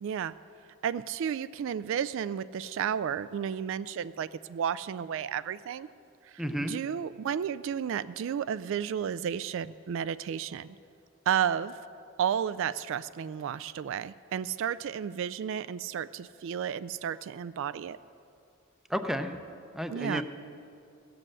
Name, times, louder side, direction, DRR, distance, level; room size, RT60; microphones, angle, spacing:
voice 1, 0.0-0.3 0.8-5.9 6.2-10.8 11.3-11.8 12.2-18.0 19.9-20.2, right 8 dB, 65° right, 15 dB, 0.3 m, -32 dB
voice 2, 6.4-6.7 18.9-19.3 19.7-20.2, equal, ahead, 7 dB, 0.6 m, -31 dB
15.5 x 7.7 x 7.6 m, 2.5 s
head